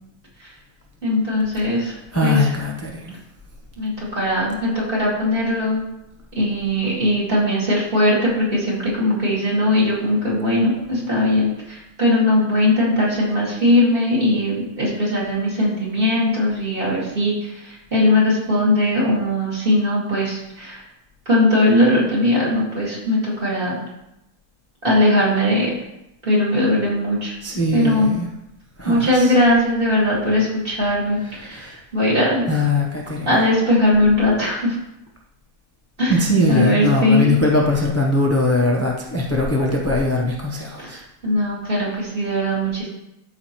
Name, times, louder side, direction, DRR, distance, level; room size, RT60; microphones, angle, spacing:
voice 1, 1.0-1.9 2.2-2.5 3.8-5.9 6.4-20.8 21.3-23.8 24.8-25.7 26.2-27.3 27.7-28.1 28.8-32.4 33.3-34.8 36.0-36.2 36.5-37.4 40.8-42.9, left 1 dB, 35° right, -6 dB, 2.6 m, -19 dB
voice 2, 1.6-3.1 27.4-28.3 28.8-29.3 31.2-31.8 32.4-33.3 36.1-41.0, left 2 dB, 15° left, -2 dB, 0.5 m, -21 dB
13.0 x 4.9 x 3.0 m, 0.87 s
omnidirectional pair, 1.7 m